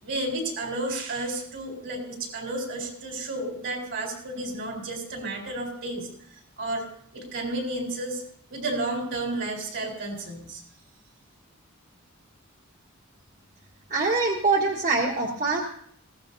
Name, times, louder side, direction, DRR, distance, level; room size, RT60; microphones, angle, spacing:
voice 1, 0.0-6.1 6.6-6.9 7.1-8.2 8.5-10.6, right 2 dB, 60° right, 1 dB, 4.1 m, -32 dB
voice 2, 13.9-15.6, right 3 dB, 45° right, -1 dB, 1.7 m, -24 dB
21.5 x 16.5 x 2.8 m, 0.65 s
head